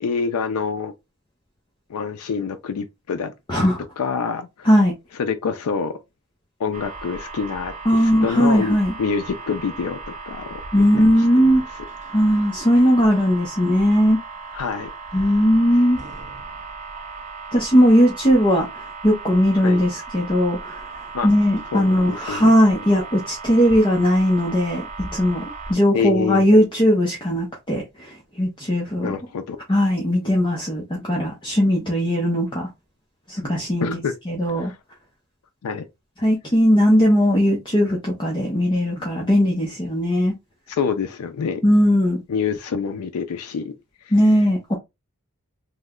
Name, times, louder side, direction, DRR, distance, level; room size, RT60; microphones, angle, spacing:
voice 1, 0.0-0.9 1.9-3.7 4.0-4.7 5.1-6.0 6.6-10.8 11.1-11.5 14.5-15.3 19.6-19.8 21.1-21.3 21.7-22.5 25.9-26.4 29.0-29.6 33.8-34.1 34.6-34.8 35.6-35.9 40.7-41.6 42.3-43.7 44.0-44.1, left 5 dB, 85° left, 0.4 m, -27 dB
sound 1, 6.7-25.7, right 4 dB, 30° right, 0.6 m, -37 dB
voice 2, 7.9-8.9 10.7-11.6 12.1-14.2 15.1-16.0 17.5-20.8 21.2-25.4 25.7-29.1 29.7-32.7 33.3-34.0 34.3-34.7 36.2-40.3 41.6-42.2 44.1-44.7, equal, 20° left, 0.7 m, -18 dB
3.1 x 2.1 x 3.6 m
head